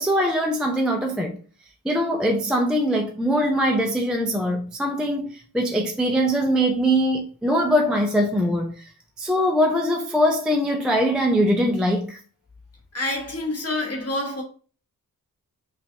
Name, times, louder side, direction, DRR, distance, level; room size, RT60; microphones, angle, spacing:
voice 1, 0.0-1.4 1.8-8.8 9.2-12.2, equal, ahead, 0.4 m, -22 dB
voice 2, 12.9-14.4, left 2 dB, 45° left, 1.0 m, -27 dB
5.1 x 2.4 x 2.7 m
wide cardioid pair, 150°, 35 cm